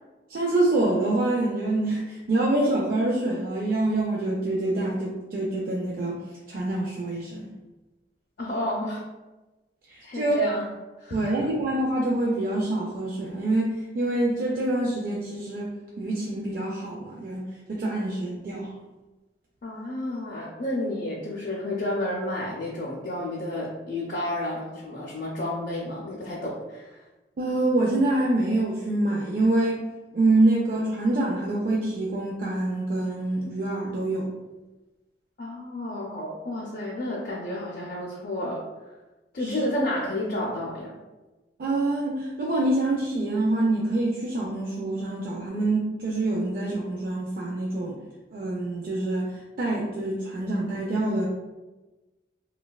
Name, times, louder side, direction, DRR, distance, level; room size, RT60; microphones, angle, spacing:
voice 1, 0.3-6.2 6.5-7.5 9.9-10.4 11.1-15.7 16.0-18.7 27.4-29.8 30.1-34.3 39.4-39.7 41.6-48.0 48.3-49.3 49.6-51.3, right 2 dB, 55° right, -3 dB, 0.3 m, -26 dB
voice 2, 8.4-9.0 10.0-10.7 11.0-11.4 19.6-27.0 35.4-38.6 39.3-40.9, left 1 dB, 50° left, -5 dB, 0.4 m, -31 dB
3.0 x 2.2 x 2.2 m, 1.1 s
head